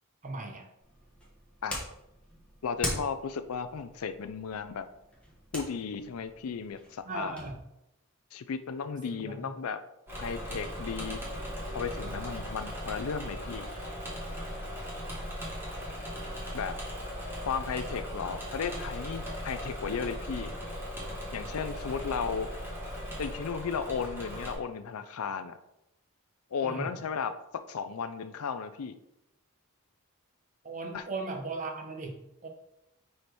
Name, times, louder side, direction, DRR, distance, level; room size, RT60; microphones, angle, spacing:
voice 1, 0.2-0.7 7.0-7.6 9.0-9.5 12.0-12.2 26.6-26.9 30.6-32.5, right 3 dB, 35° right, 3 dB, 0.9 m, -38 dB
sound 1, 0.8-7.5, left 1 dB, 5° left, 1.2 m, -42 dB
voice 2, 2.6-4.9 5.5-7.4 8.3-9.8 10.2-11.2 11.7-13.7 16.5-16.7 17.4-20.5 21.3-22.5 23.2-25.6 26.5-27.4 27.7-28.9 30.9-31.0, left 6 dB, 75° left, 10 dB, 0.5 m, -35 dB
Engine / Mechanisms, 10.1-24.6, equal, 10° right, 1.4 m, -38 dB
5.0 x 4.2 x 4.5 m, 0.86 s
head